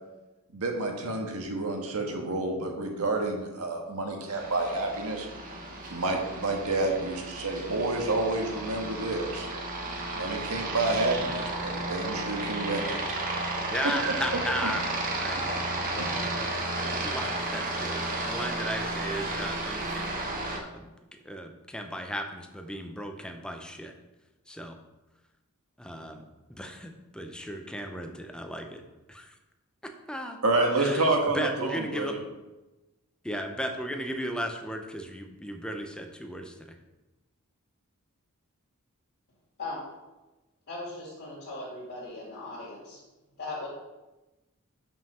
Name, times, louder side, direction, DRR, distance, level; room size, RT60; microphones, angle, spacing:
voice 1, 0.5-5.3 5.9-9.5 10.1-13.0 14.0-14.2 14.6-14.7 16.0-16.1 30.4-32.2, right 2 dB, 85° right, 2 dB, 1.5 m, -29 dB
Aircraft, 4.3-20.6, right 2 dB, 40° right, 1.0 m, -33 dB
voice 2, 13.7-14.8 15.2-15.6 15.9-16.5 16.8-20.9 21.2-23.9 24.5-24.8 25.8-26.2 26.5-28.8 29.1-29.3 30.1-30.4 30.8-31.1 31.3-32.1 33.2-36.8, equal, 5° left, 5 dB, 0.7 m, -36 dB
voice 3, 40.7-43.0 43.4-43.7, left 2 dB, 55° left, -6 dB, 2.5 m, -38 dB
5.6 x 5.4 x 5.6 m, 1.1 s
head